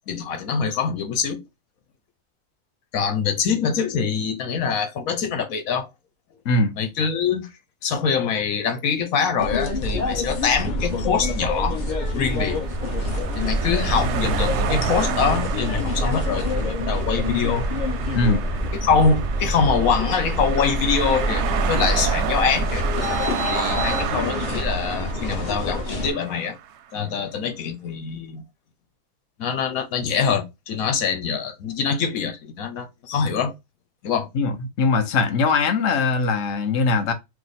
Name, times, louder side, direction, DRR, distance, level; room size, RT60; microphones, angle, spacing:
voice 1, 0.1-1.4 2.9-5.9 6.8-7.5 7.8-11.8 12.1-12.6 13.3-17.7 18.8-22.9 23.5-26.6 26.9-28.4 29.4-33.5 34.0-34.3, left 6 dB, 90° left, 1.3 m, -24 dB
sound 1, 9.4-26.1, left 1 dB, 35° left, 1.1 m, -26 dB
sound 2, 11.3-26.7, right 9 dB, 65° right, 0.7 m, -31 dB
voice 2, 34.3-37.1, left 4 dB, 60° left, 1.0 m, -21 dB
4.8 x 2.2 x 4.1 m
omnidirectional pair, 1.4 m